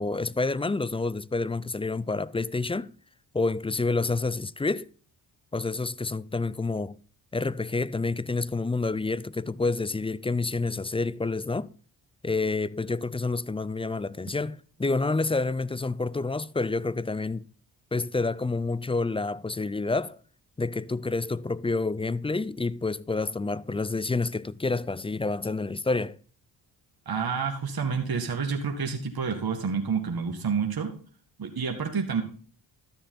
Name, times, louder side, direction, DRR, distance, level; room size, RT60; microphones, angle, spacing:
voice 1, 0.0-2.9 3.3-4.9 5.5-7.0 7.3-11.7 12.2-17.5 17.9-20.2 20.6-26.2, left 3 dB, 10° left, 0.4 m, -28 dB
voice 2, 27.1-30.9 31.4-32.2, right 5 dB, 50° right, 2.0 m, -29 dB
12.5 x 6.7 x 3.8 m
supercardioid pair, 45°, 48 cm